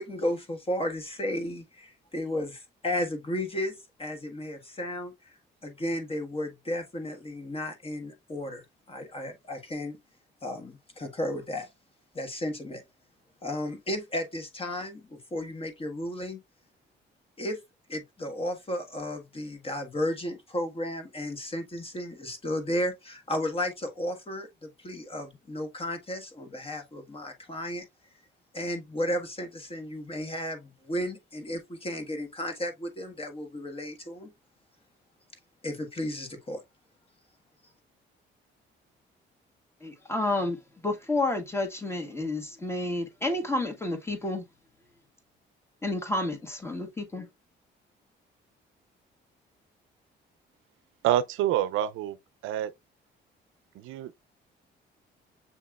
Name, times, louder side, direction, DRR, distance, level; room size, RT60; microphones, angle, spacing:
voice 1, 0.0-3.7 4.0-5.4 5.6-10.0 10.4-11.7 12.1-12.8 13.4-16.4 17.4-17.6 17.9-27.8 28.5-34.3 35.6-36.6, left 1 dB, 30° left, 1.4 m, -33 dB
voice 2, 39.8-40.6 40.8-44.4 45.8-47.3, left 2 dB, 15° left, 1.5 m, -30 dB
voice 3, 51.0-52.2 52.4-52.7 53.7-54.2, right 12 dB, 90° right, 0.5 m, -27 dB
7.3 x 3.0 x 2.3 m
cardioid pair, 90°, 20 cm